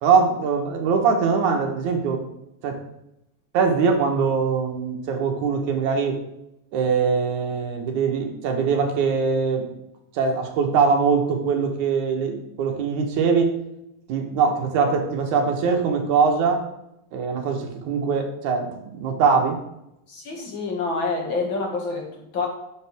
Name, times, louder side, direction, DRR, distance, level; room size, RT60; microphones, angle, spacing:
voice 1, 0.0-2.2 2.6-2.8 3.5-6.2 6.7-9.7 10.1-13.5 14.1-16.6 17.1-19.6, right 5 dB, 75° right, 3 dB, 2.8 m, -22 dB
voice 2, 20.1-22.5, left 3 dB, 45° left, 0 dB, 2.4 m, -27 dB
10.5 x 7.0 x 3.5 m, 0.84 s
omnidirectional pair, 3.5 m